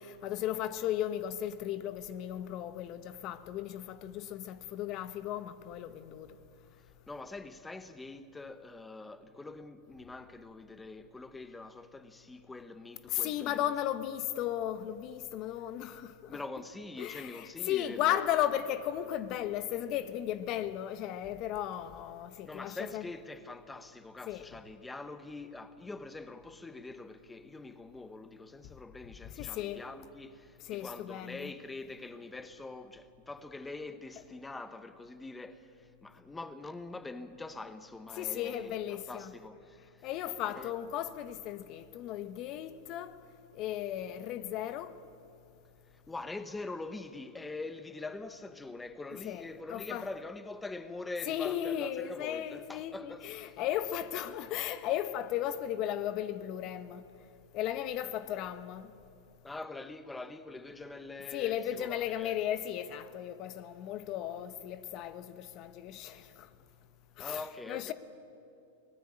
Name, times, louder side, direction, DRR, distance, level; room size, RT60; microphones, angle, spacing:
voice 1, 0.0-6.3 13.1-16.4 17.0-23.0 24.3-24.4 29.3-29.8 30.6-31.5 38.1-39.3 40.0-43.2 43.5-44.9 49.2-50.1 51.3-57.0 57.5-58.9 61.3-66.5 67.2-67.9, left 11 dB, 45° left, 1.1 m, -35 dB
voice 2, 7.1-13.6 16.3-18.2 22.4-40.1 40.6-40.7 45.9-53.5 59.4-62.4 67.2-67.9, left 3 dB, 10° left, 1.0 m, -44 dB
24.0 x 18.5 x 8.8 m
hypercardioid pair, 110°, 0 cm